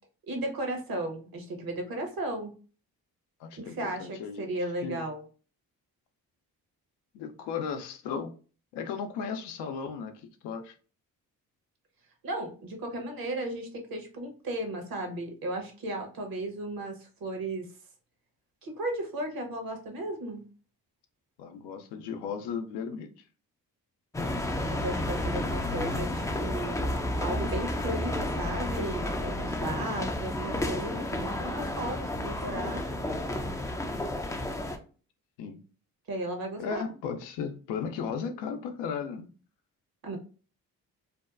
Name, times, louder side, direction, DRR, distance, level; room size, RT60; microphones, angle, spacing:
voice 1, 0.3-2.5 3.5-5.2 12.2-17.7 18.6-20.4 24.5-32.9 36.1-36.8 40.0-40.2, right 1 dB, 55° right, 0.9 m, -35 dB
voice 2, 3.4-4.5 4.8-5.0 7.1-8.3 8.7-10.7 21.4-23.1 35.4-35.6 36.6-39.3, left 6 dB, 75° left, 0.5 m, -35 dB
sound 1, 24.1-34.8, left 1 dB, 10° left, 0.3 m, -31 dB
2.7 x 2.2 x 2.4 m
hypercardioid pair, 45°, 42 cm